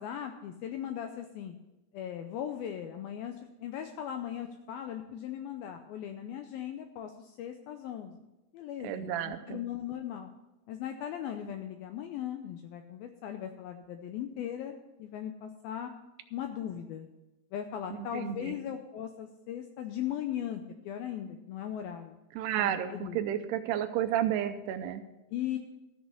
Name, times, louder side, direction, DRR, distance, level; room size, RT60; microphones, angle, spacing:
voice 1, 0.0-1.5 1.9-3.3 3.6-7.1 7.4-8.1 8.5-10.3 10.7-15.9 16.3-17.1 17.5-22.2 22.6-23.2 25.3-25.6, left 10 dB, 85° left, 6 dB, 2.2 m, -38 dB
voice 2, 8.8-9.6 18.0-18.6 22.3-25.0, right 11 dB, 80° right, 9 dB, 2.5 m, -32 dB
13.5 x 6.3 x 7.5 m, 0.97 s
omnidirectional pair, 5.0 m